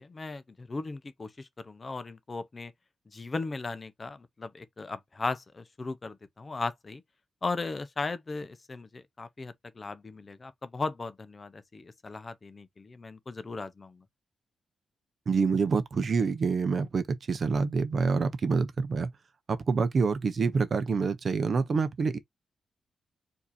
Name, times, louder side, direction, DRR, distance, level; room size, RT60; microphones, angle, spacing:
voice 1, 0.0-2.7 3.1-7.0 7.4-14.0, left 3 dB, 25° left, 0.6 m, -37 dB
voice 2, 15.3-19.1 19.5-22.2, right 5 dB, 40° right, 0.6 m, -27 dB
4.7 x 2.7 x 4.1 m
wide cardioid pair, 160°, 0 cm